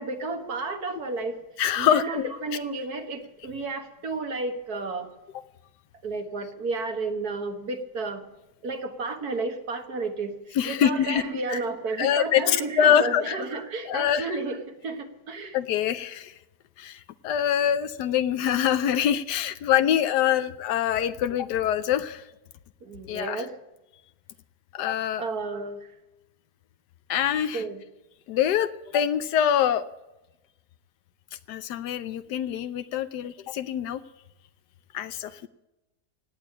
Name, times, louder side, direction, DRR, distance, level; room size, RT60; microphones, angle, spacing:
voice 1, 0.0-1.4 1.8-5.1 6.0-8.2 8.6-10.3 10.7-14.6 14.8-15.6 22.8-23.5 25.2-25.8 27.5-27.8, right 3 dB, 70° right, 5 dB, 2.1 m, -32 dB
voice 2, 1.6-2.6 5.3-5.4 10.5-11.2 11.5-11.6 12.0-13.4 13.8-14.4 15.5-16.3 16.8-22.3 23.1-23.5 24.7-25.2 27.1-27.6 28.3-29.8 31.5-34.0 34.9-35.5, left 9 dB, 90° left, 12 dB, 1.3 m, -25 dB
17.5 x 9.0 x 8.6 m, 0.99 s
omnidirectional pair, 1.7 m